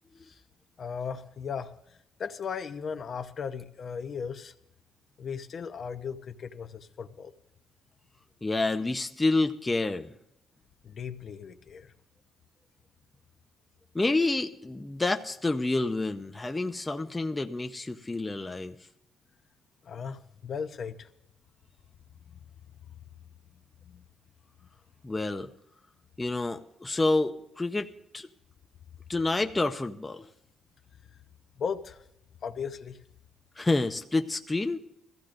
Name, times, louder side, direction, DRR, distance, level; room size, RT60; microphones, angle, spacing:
voice 1, 0.8-4.5 5.2-7.3 10.8-11.9 19.8-21.1 23.8-24.0 31.6-32.0 32.4-33.0, left 6 dB, 55° left, 8 dB, 0.8 m, -37 dB
voice 2, 8.4-10.1 13.9-18.7 25.0-25.5 26.2-28.3 29.1-30.3 33.6-34.8, left 2 dB, 15° left, 5 dB, 0.6 m, -28 dB
21.0 x 15.0 x 2.6 m, 0.79 s
cardioid pair, 90°, 0 cm